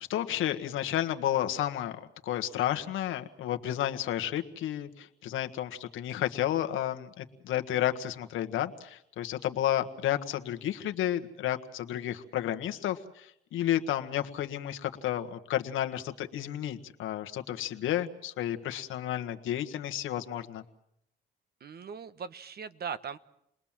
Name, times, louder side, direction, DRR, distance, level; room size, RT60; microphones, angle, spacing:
voice 1, 0.0-20.6, left 12 dB, 80° left, 7 dB, 1.6 m, -32 dB
voice 2, 21.6-23.2, right 6 dB, 50° right, 12 dB, 1.3 m, -39 dB
29.5 x 20.5 x 7.5 m, 0.77 s
cardioid pair, 90°, 20 cm